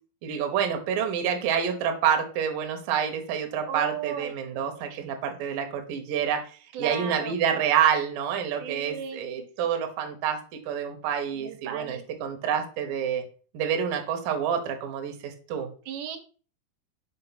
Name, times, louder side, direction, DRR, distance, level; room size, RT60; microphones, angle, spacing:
voice 1, 0.2-6.4 6.8-10.4 10.7-13.2 13.5-15.7, right 8 dB, 70° right, 4 dB, 2.3 m, -27 dB
voice 2, 3.6-4.3 4.9-5.0 6.7-7.4 8.6-9.5 11.3-12.1 15.9-16.2, right 7 dB, 90° right, 6 dB, 3.0 m, -36 dB
6.7 x 5.1 x 4.1 m, 0.39 s
omnidirectional pair, 4.9 m